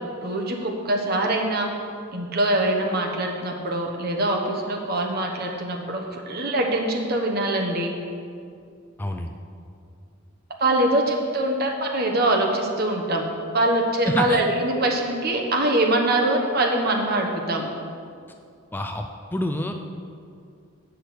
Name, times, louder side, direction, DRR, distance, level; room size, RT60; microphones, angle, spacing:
voice 1, 0.2-1.7 2.1-7.9 10.6-13.3 13.5-17.7, right 1 dB, 50° right, 1 dB, 1.2 m, -23 dB
voice 2, 9.0-9.3 14.0-14.4 18.7-19.1 19.3-19.7, left 1 dB, 10° left, 4 dB, 0.4 m, -27 dB
8.5 x 6.4 x 6.2 m, 2.4 s
head